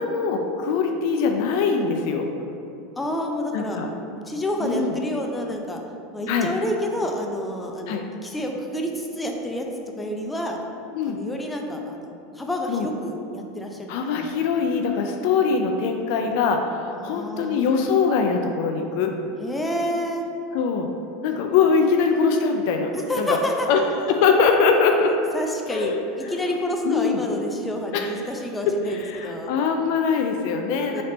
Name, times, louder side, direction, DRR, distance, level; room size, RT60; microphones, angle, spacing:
voice 1, 0.0-2.3 3.5-3.9 4.6-4.9 6.3-6.5 7.9-8.0 10.9-11.2 12.7-12.9 13.9-19.1 20.5-20.9 21.2-22.9 23.2-23.4 23.7-23.8 24.1-25.1 25.7-26.5 26.8-27.2 27.9-28.1 28.7-31.0, left 5 dB, 65° left, 4 dB, 0.4 m, -22 dB
voice 2, 3.0-3.8 4.3-5.8 6.1-9.7 10.0-10.6 11.1-14.3 17.0-17.7 19.4-20.3 22.9-23.7 24.5-24.8 25.3-29.5 30.9-31.0, equal, 10° left, 1 dB, 0.6 m, -29 dB
4.1 x 3.3 x 3.9 m, 2.6 s
hypercardioid pair, 95°, 0 cm